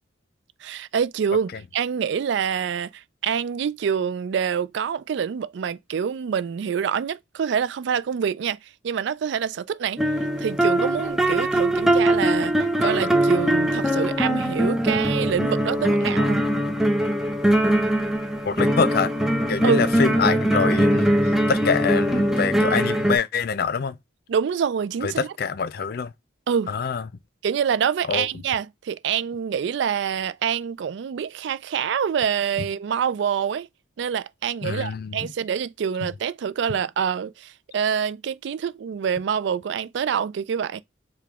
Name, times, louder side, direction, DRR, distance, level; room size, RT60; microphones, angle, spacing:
voice 1, 0.6-10.0 10.4-16.4 19.6-19.9 24.3-25.3 26.5-26.7 27.4-33.7 34.0-40.8, right 7 dB, 65° right, 0.3 m, -26 dB
sound 1, 10.0-23.2, right 1 dB, ahead, 0.5 m, -21 dB
voice 2, 18.5-19.1 19.5-24.0 25.0-26.1 26.7-27.1 28.1-28.3 34.6-35.3 36.0-36.1, left 5 dB, 50° left, 0.4 m, -25 dB
4.8 x 2.3 x 3.4 m
head